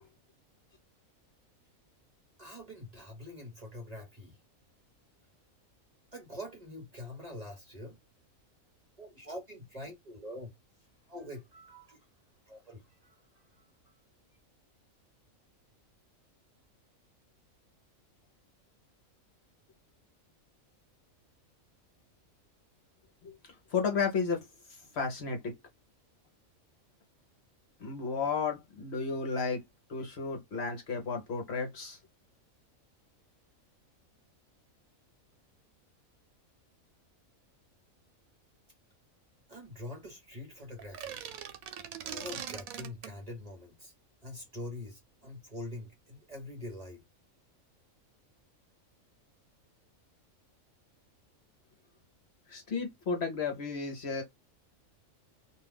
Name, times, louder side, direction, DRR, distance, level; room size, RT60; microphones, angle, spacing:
voice 1, 2.4-4.4 6.1-8.0 9.0-10.5 11.1-12.0 12.5-14.0 39.5-41.2 42.0-43.9 44.2-47.0, left 1 dB, 30° right, 1.0 m, -45 dB
voice 2, 23.2-25.5 27.8-29.6 29.9-32.0 52.5-54.2, left 5 dB, 55° left, 1.0 m, -33 dB
sound 1, 40.8-43.2, right 9 dB, 90° right, 1.0 m, -41 dB
2.5 x 2.3 x 3.4 m
omnidirectional pair, 1.4 m